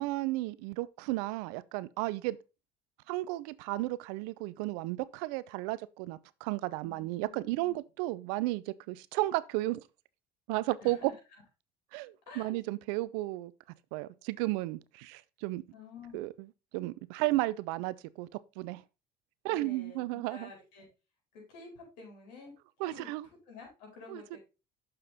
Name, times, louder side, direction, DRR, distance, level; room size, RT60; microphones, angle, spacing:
voice 1, 0.0-2.4 3.1-9.8 10.5-11.1 11.9-13.5 13.9-15.6 16.1-16.5 16.7-18.3 18.6-18.8 19.4-20.5 22.8-23.3 24.1-24.4, right 18 dB, 75° right, 0.5 m, -33 dB
voice 2, 6.8-7.7 10.8-11.1 12.3-12.6 15.7-16.3 19.5-20.9 21.3-22.5 22.8-23.1 23.5-24.4, left 4 dB, 80° left, 4.5 m, -50 dB
6.8 x 5.7 x 4.1 m
hypercardioid pair, 75°, 21 cm